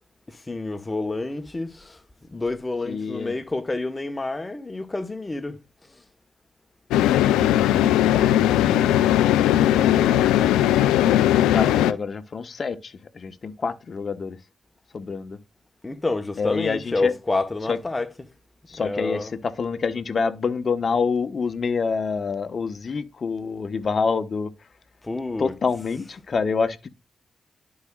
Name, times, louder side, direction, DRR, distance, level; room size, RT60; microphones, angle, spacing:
voice 1, 0.3-2.0 2.3-5.6 5.9-6.0 15.8-18.1 18.8-19.3 25.0-25.6, left 2 dB, 25° left, 1.1 m, -29 dB
voice 2, 2.9-3.3 7.2-9.0 9.7-10.5 11.5-14.4 14.9-15.4 16.4-17.1 17.7-17.8 18.7-24.5 25.4-26.9, left 5 dB, 55° left, 0.9 m, -27 dB
sound 1, 6.9-11.9, left 12 dB, 90° left, 0.3 m, -18 dB
11.5 x 4.8 x 2.2 m
supercardioid pair, 40°, 0 cm